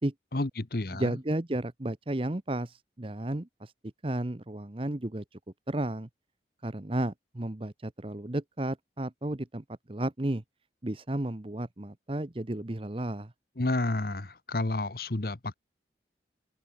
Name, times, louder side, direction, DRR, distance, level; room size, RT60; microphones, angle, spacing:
voice 1, 0.3-1.2 13.6-15.5, left 2 dB, 55° left, 1.2 m, -30 dB
voice 2, 1.0-3.7 4.0-5.2 5.7-6.1 6.6-10.4 10.8-13.3, right 1 dB, 30° right, 0.9 m, -33 dB
open air
head